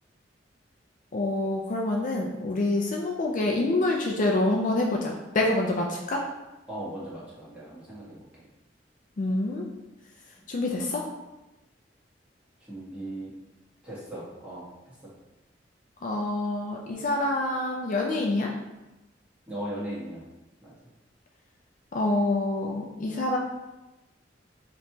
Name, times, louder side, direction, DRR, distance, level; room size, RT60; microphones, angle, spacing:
voice 1, 1.1-6.3 9.2-9.7 10.5-11.1 16.0-18.5 21.9-23.4, left 2 dB, 45° left, 0 dB, 0.5 m, -26 dB
voice 2, 6.7-8.2 12.7-13.3 13.8-14.6 15.0-15.1 19.5-20.2 20.6-20.7, right 1 dB, 5° right, -9 dB, 1.5 m, -37 dB
5.2 x 3.0 x 2.8 m, 1.0 s
head